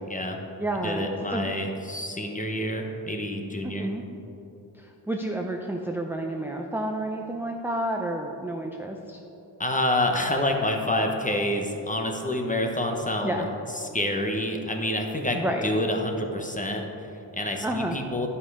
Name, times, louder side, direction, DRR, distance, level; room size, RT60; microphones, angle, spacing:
voice 1, 0.1-0.4 0.8-3.9 9.6-13.4 13.7-18.3, left 1 dB, 20° left, 3 dB, 1.0 m, -28 dB
voice 2, 0.6-1.5 3.6-4.0 4.8-9.2 13.2-13.5 15.3-15.7 17.6-18.0, right 1 dB, 5° right, 1 dB, 0.5 m, -30 dB
10.5 x 5.6 x 4.8 m, 2.9 s
cardioid pair, 70°, 44 cm